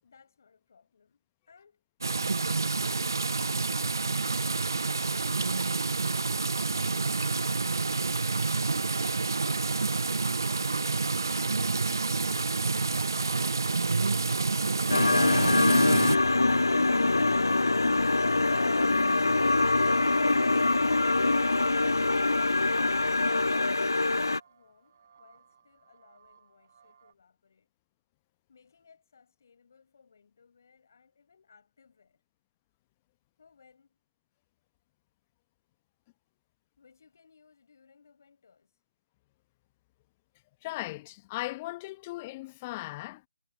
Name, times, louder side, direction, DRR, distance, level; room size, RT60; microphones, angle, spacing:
voice 1, 0.0-1.8 21.5-27.7 28.5-32.2 33.4-34.0 36.8-38.8, left 5 dB, 50° left, 7.8 m, -62 dB
sound 1, 2.0-16.2, right 3 dB, 65° right, 0.4 m, -28 dB
sound 2, 11.1-27.1, right 7 dB, 45° right, 4.9 m, -61 dB
sound 3, 14.9-24.4, left 2 dB, 75° left, 0.5 m, -24 dB
voice 2, 18.6-19.4 40.6-43.3, left 20 dB, 25° left, 1.0 m, -38 dB
figure-of-eight pair, 145°, 2 cm